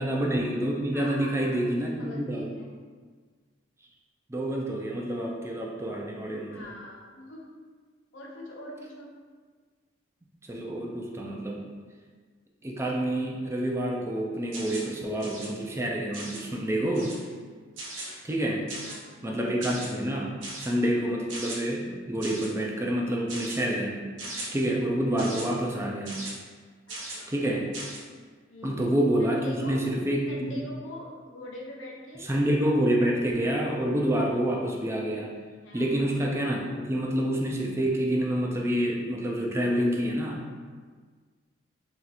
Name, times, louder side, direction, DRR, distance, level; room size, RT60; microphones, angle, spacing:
voice 1, 0.0-2.5 4.3-6.6 10.5-11.7 12.6-17.1 18.2-18.6 19.2-24.0 24.5-26.2 27.3-27.6 28.6-30.2 32.3-35.3 35.7-40.4, right 1 dB, 15° right, -1 dB, 0.3 m, -28 dB
voice 2, 0.9-1.7 2.0-2.7 6.5-7.6 8.1-9.1 18.8-19.5 26.9-27.3 28.5-28.8 29.2-29.8 30.3-32.3 35.6-35.9, left 1 dB, 75° left, -1 dB, 0.6 m, -42 dB
sound 1, 14.5-14.9 15.2-15.5 16.1-16.5 16.9-17.3 17.8-18.1 18.7-19.1 19.6-19.9 20.4-20.7 21.3-21.6 22.2-22.5 23.3-23.6 24.2-24.5 25.2-25.5 26.1-26.3 26.9-27.2 27.7-28.0, right 2 dB, 85° right, 0.8 m, -38 dB
2.8 x 2.4 x 4.0 m, 1.5 s
head